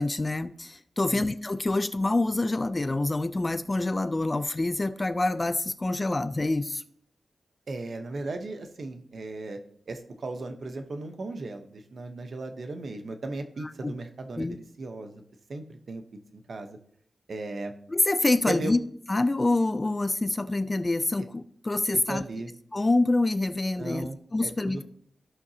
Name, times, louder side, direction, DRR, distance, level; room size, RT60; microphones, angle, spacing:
voice 1, 0.0-6.8 13.6-13.9 14.4-14.6 17.9-18.8 19.1-22.2 22.7-24.8, left 2 dB, 30° left, 12 dB, 0.5 m, -26 dB
voice 2, 7.7-9.6 9.9-15.1 15.5-16.0 16.3-16.7 17.3-17.7 18.5-18.7 21.9-22.5 23.8-24.8, right 2 dB, 65° right, 6 dB, 1.0 m, -36 dB
14.5 x 5.8 x 2.8 m, 0.65 s
cardioid pair, 65°, 0 cm